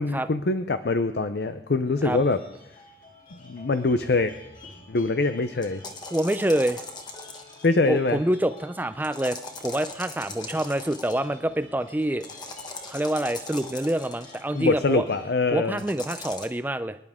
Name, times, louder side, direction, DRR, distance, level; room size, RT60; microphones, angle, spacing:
voice 1, 0.0-2.4 3.4-4.3 4.9-5.8 7.6-8.2 14.5-15.8, left 3 dB, 65° left, 10 dB, 0.6 m, -24 dB
sound 1, 1.8-15.3, left 2 dB, 45° left, 3.1 m, -49 dB
sound 2, 5.6-7.8 9.0-11.3 12.2-14.4 15.8-16.5, left 3 dB, 25° left, 1.2 m, -40 dB
voice 2, 6.1-6.8 7.9-12.3 12.9-15.0 15.5-17.0, right 1 dB, 10° right, 11 dB, 0.5 m, -26 dB
25.0 x 10.5 x 3.6 m, 0.82 s
head